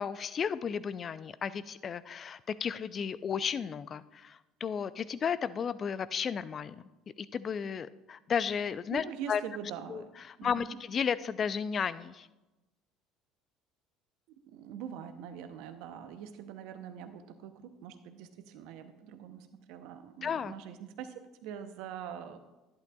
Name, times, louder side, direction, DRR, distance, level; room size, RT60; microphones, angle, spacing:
voice 1, 0.0-6.8 7.2-9.4 9.9-12.3 20.2-20.5, left 7 dB, 40° left, 16 dB, 0.4 m, -34 dB
voice 2, 8.9-10.1 10.4-10.8 14.3-22.4, right 8 dB, 70° right, 9 dB, 0.8 m, -44 dB
11.5 x 10.5 x 2.4 m, 1.1 s
hypercardioid pair, 65°, 0 cm